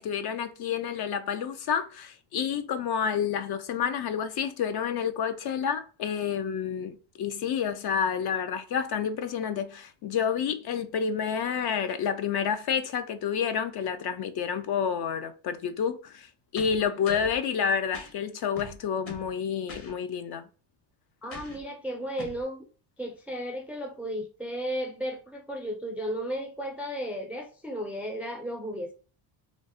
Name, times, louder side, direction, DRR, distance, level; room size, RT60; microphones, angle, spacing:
voice 1, 0.0-16.3 16.5-20.5, left 7 dB, 55° left, 0.5 m, -29 dB
sound 1, 16.6-17.4 17.9-18.1 18.6-19.3 19.7-19.9 21.3-21.6 22.2-22.4, left 2 dB, 30° left, 0.8 m, -43 dB
voice 2, 16.8-17.3 21.2-22.7 23.0-28.9, equal, 5° right, 0.3 m, -34 dB
3.2 x 2.0 x 2.7 m
cardioid pair, 105°, 49 cm